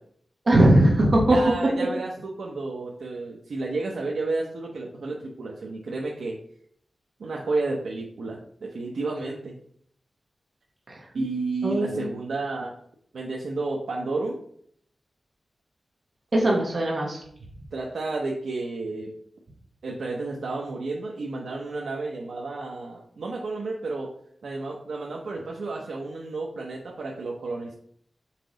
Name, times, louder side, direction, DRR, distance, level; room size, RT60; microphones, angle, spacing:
voice 1, 0.5-1.4 10.9-11.0 11.6-12.1 16.3-17.2, right 1 dB, 40° right, -2 dB, 1.3 m, -20 dB
voice 2, 1.3-6.4 7.2-9.6 11.1-12.7 13.1-14.4 16.3-16.6 17.7-19.1 19.8-24.1 24.4-27.8, right 3 dB, 80° right, -2 dB, 0.8 m, -31 dB
5.9 x 4.7 x 4.0 m, 0.65 s
wide cardioid pair, 145°, 0 cm